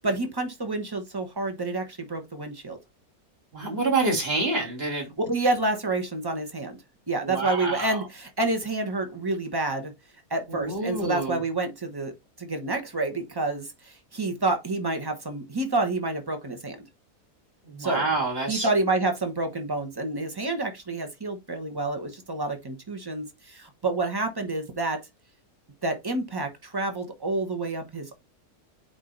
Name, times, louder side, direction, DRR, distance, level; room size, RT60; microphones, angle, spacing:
voice 1, 0.0-2.8 5.2-6.8 7.1-9.9 10.3-12.1 12.4-16.9 17.8-18.1 18.5-25.0 25.8-28.2, right 2 dB, 15° right, 1.0 m, -28 dB
voice 2, 3.5-5.1 7.2-8.0 10.5-11.4 17.7-18.7, right 3 dB, 40° right, 2.4 m, -27 dB
8.8 x 3.0 x 3.9 m
omnidirectional pair, 1.6 m